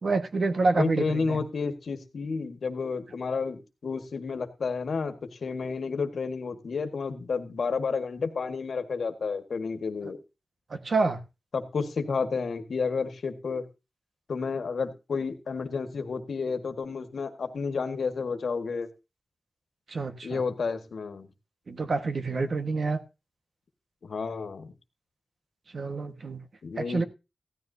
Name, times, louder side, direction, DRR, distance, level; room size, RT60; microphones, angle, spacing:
voice 1, 0.0-1.4 10.7-11.2 19.9-20.4 21.7-23.0 25.7-26.4 26.8-27.0, right 3 dB, 65° right, 7 dB, 1.5 m, -27 dB
voice 2, 0.7-10.2 11.5-13.7 14.3-18.9 20.2-21.3 24.0-24.7 26.6-27.0, left 5 dB, 80° left, 8 dB, 1.6 m, -31 dB
15.5 x 13.0 x 2.8 m, 0.28 s
cardioid pair, 60°, 0 cm